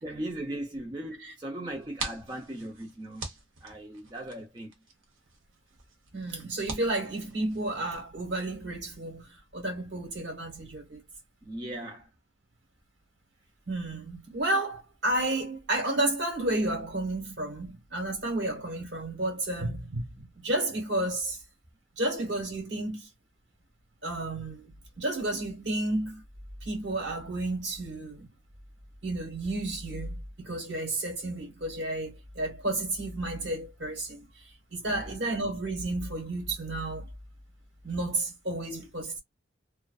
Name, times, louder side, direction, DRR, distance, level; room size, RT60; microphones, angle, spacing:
voice 1, 0.0-3.2 3.6-4.7 11.4-12.1 34.9-35.1, right 1 dB, 20° right, 0.5 m, -38 dB
sound 1, 1.7-8.0, right 3 dB, 75° right, 0.9 m, -44 dB
voice 2, 6.1-11.0 13.7-21.4 22.0-23.1 24.0-26.2 26.6-28.3 29.0-37.1 37.8-39.2, right 1 dB, 60° right, 1.2 m, -32 dB
2.5 x 2.1 x 2.3 m
head